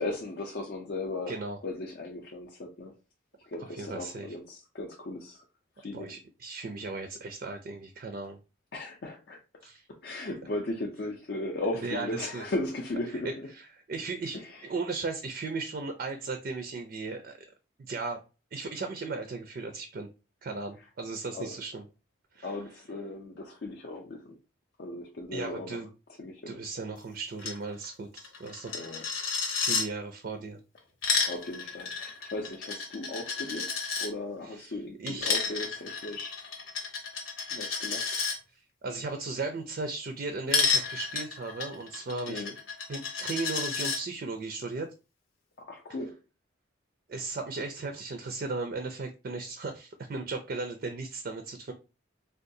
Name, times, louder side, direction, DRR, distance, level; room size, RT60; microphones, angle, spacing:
voice 1, 0.0-1.4 1.6-2.9 3.5-5.4 5.8-6.1 8.7-9.4 10.0-13.5 14.3-14.6 21.3-21.5 22.4-24.4 24.8-25.8 26.2-26.6 28.7-29.0 31.3-36.3 37.5-38.1 42.3-42.5 45.6-46.2, left 2 dB, 55° left, 0.5 m, -37 dB
voice 2, 1.3-1.6 3.6-4.3 5.9-8.4 9.6-9.9 11.7-12.4 13.1-17.5 17.8-18.2 18.5-20.1 20.4-21.8 22.3-22.6 25.3-25.9 26.5-28.8 29.5-30.6 34.4-35.5 38.5-42.5 42.9-44.9 47.1-51.7, right 3 dB, 45° right, 0.3 m, -36 dB
Coin (dropping), 27.4-27.6 27.8-27.9 28.2-29.8 30.8-34.1 35.1-38.3 40.5-44.0, left 5 dB, 85° left, 0.9 m, -31 dB
3.6 x 2.3 x 2.6 m
head